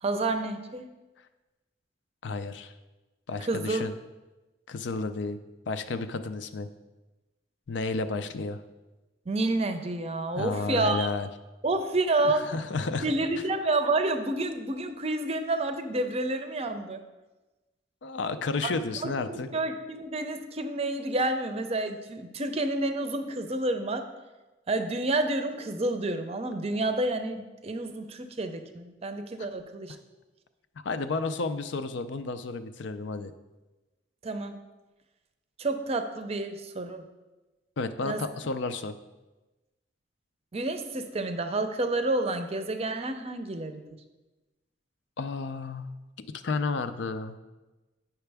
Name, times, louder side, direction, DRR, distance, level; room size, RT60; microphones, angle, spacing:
voice 1, 0.0-0.9 3.4-3.9 9.3-11.1 11.6-12.5 13.0-17.0 18.6-18.7 19.0-24.1 24.7-30.0 34.2-34.6 35.6-37.1 38.0-38.2 40.5-43.8, right 2 dB, 35° right, 8 dB, 0.6 m, -29 dB
voice 2, 2.2-2.7 3.3-3.9 4.7-5.4 5.7-6.7 7.7-8.6 10.3-11.3 12.2-13.1 18.0-19.5 29.9-30.0 30.8-33.3 37.8-38.9 45.2-45.9 46.4-47.4, left 3 dB, 70° left, 11 dB, 0.5 m, -32 dB
8.8 x 5.8 x 3.4 m, 1.1 s
head